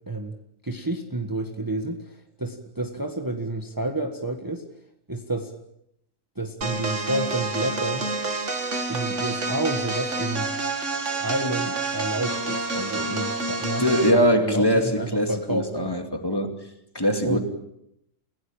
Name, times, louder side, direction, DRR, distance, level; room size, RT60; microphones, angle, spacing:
voice 1, 0.6-4.6 5.1-5.5 6.4-8.1 8.9-10.5 11.1-15.9 17.2-17.4, right 1 dB, 15° right, 4 dB, 1.7 m, -30 dB
sound 1, 6.6-14.2, right 3 dB, 65° right, 2.7 m, -28 dB
voice 2, 13.8-16.5 16.9-17.4, equal, 15° left, 5 dB, 2.6 m, -22 dB
29.5 x 17.0 x 8.9 m, 0.79 s
omnidirectional pair, 1.3 m